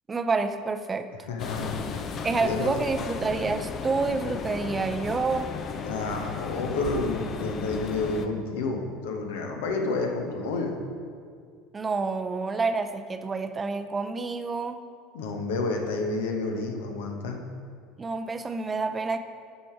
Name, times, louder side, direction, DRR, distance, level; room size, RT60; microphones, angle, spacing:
voice 1, 0.1-1.3 2.2-5.5 11.7-14.8 18.0-19.2, right 4 dB, 25° right, 9 dB, 0.6 m, -28 dB
voice 2, 1.3-2.8 5.8-10.7 15.1-17.4, left 3 dB, 70° left, 3 dB, 1.2 m, -30 dB
sound 1, 1.4-8.3, left 5 dB, 40° left, 0.7 m, -35 dB
12.0 x 5.1 x 4.7 m, 2.1 s
hypercardioid pair, 70°, 0 cm